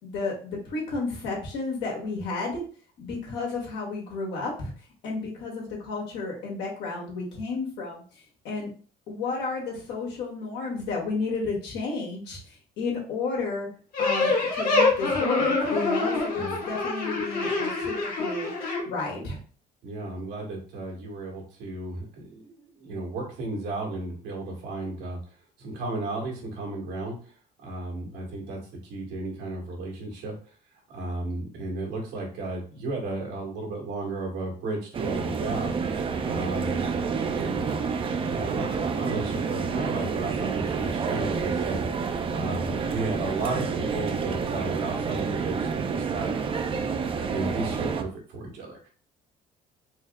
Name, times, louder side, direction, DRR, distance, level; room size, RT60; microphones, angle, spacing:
voice 1, 0.0-2.6 3.0-4.7 5.0-8.7 9.1-13.7 14.0-18.5 18.8-19.4, left 3 dB, 85° left, -1 dB, 1.5 m, -32 dB
sound 1, 13.9-18.8, left 3 dB, 60° left, 1.4 m, -25 dB
voice 2, 19.8-25.2 25.6-27.3 27.6-30.4 30.9-35.7 36.2-37.6 38.2-41.8 42.3-46.3 47.3-48.9, right 2 dB, 85° right, -2 dB, 1.7 m, -34 dB
sound 2, 34.9-48.0, right 5 dB, 30° right, 0.5 m, -29 dB
4.4 x 2.0 x 3.5 m, 0.41 s
cardioid pair, 110°, 17 cm